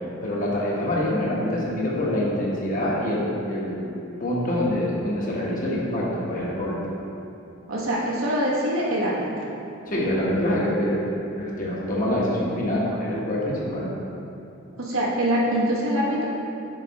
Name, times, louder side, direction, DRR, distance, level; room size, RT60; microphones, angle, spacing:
voice 1, 0.2-6.7 9.9-11.0 11.4-13.9, left 1 dB, 40° left, -5 dB, 1.2 m, -25 dB
voice 2, 7.7-9.3 14.8-16.3, equal, 85° right, -5 dB, 1.4 m, -24 dB
6.7 x 4.9 x 4.1 m, 2.8 s
head